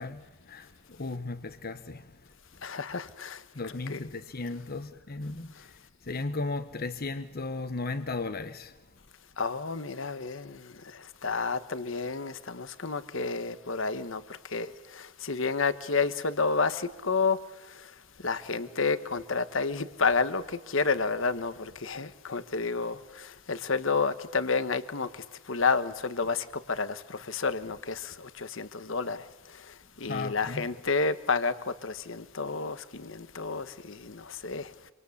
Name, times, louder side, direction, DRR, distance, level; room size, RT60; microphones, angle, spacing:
voice 1, 0.0-2.3 3.5-9.0 30.1-30.7, left 3 dB, 45° left, 1.1 m, -36 dB
voice 2, 2.6-4.0 9.4-14.2 14.5-17.4 17.7-17.8 18.2-29.3 29.7-34.7, left 4 dB, 65° left, 1.3 m, -30 dB
26.5 x 25.0 x 8.5 m
head